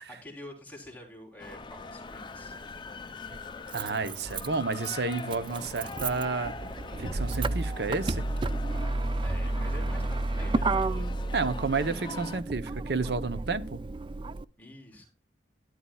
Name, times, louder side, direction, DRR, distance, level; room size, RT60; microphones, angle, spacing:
voice 1, 0.0-2.6 9.1-10.8 14.6-15.1, left 1 dB, 10° left, 3.4 m, -47 dB
sound 1, 1.4-12.4, left 3 dB, 25° left, 0.6 m, -43 dB
Motor vehicle (road), 2.1-2.2 3.3-14.4, right 2 dB, 30° right, 0.4 m, -32 dB
voice 2, 3.7-6.5 7.0-8.3 11.3-13.8, right 4 dB, 65° right, 0.8 m, -31 dB
12.5 x 10.5 x 2.3 m
head